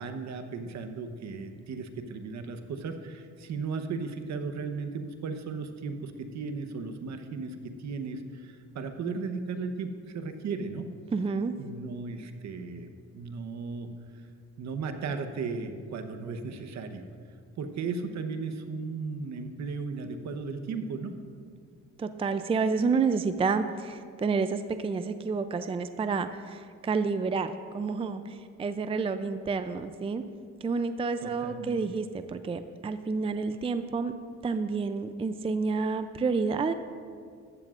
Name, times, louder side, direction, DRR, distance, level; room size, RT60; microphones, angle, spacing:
voice 1, 0.0-10.9 11.6-12.9 13.1-13.9 14.1-14.2 14.6-17.0 17.6-21.1 31.2-31.8, right 4 dB, 65° right, 7 dB, 1.0 m, -36 dB
voice 2, 11.1-11.5 22.0-30.2 30.6-34.1 34.4-36.7, right 4 dB, 20° right, 10 dB, 0.4 m, -29 dB
15.0 x 13.0 x 2.5 m, 2.1 s
cardioid pair, 90°, 30 cm